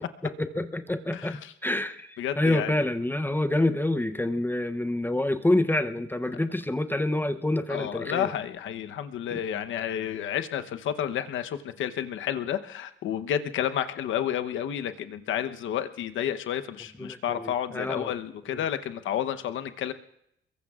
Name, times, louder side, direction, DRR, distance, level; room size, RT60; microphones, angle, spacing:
voice 1, 0.2-8.3 9.3-9.4 17.0-18.1, left 1 dB, 10° left, 8 dB, 0.7 m, -27 dB
voice 2, 1.1-1.5 2.2-2.7 7.7-19.9, left 10 dB, 75° left, 9 dB, 1.0 m, -31 dB
26.5 x 22.5 x 2.4 m, 0.76 s
cardioid pair, 90°, 20 cm